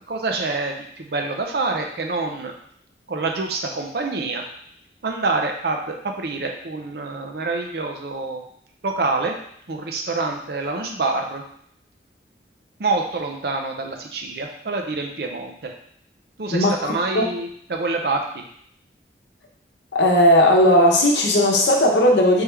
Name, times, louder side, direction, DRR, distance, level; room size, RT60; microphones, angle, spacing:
voice 1, 0.1-2.5 3.1-4.4 5.0-8.4 8.8-9.3 9.7-11.4 12.8-15.7 16.4-18.4, right 3 dB, 60° right, 3 dB, 0.6 m, -26 dB
voice 2, 16.5-17.2 19.9-22.4, left 1 dB, 90° left, 0 dB, 0.8 m, -16 dB
3.5 x 3.1 x 3.3 m, 0.66 s
head